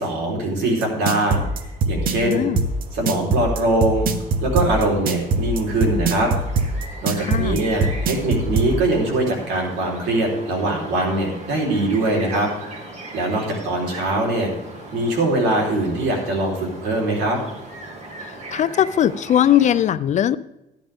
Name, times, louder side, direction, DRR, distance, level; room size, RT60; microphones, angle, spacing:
voice 1, 0.0-1.4 1.9-2.5 2.9-4.1 4.4-6.3 7.0-12.5 13.1-14.5 14.9-17.4, right 2 dB, 80° right, -1 dB, 3.6 m, -22 dB
sound 1, 0.8-8.7, right 4 dB, 60° right, 1.0 m, -21 dB
sound 2, 1.0-19.8, right 2 dB, 40° right, 2.7 m, -39 dB
voice 2, 2.2-2.6 7.2-7.6 18.5-20.4, left 10 dB, 45° left, 15 dB, 0.4 m, -19 dB
13.0 x 10.5 x 3.6 m, 0.91 s
cardioid pair, 110°, 17 cm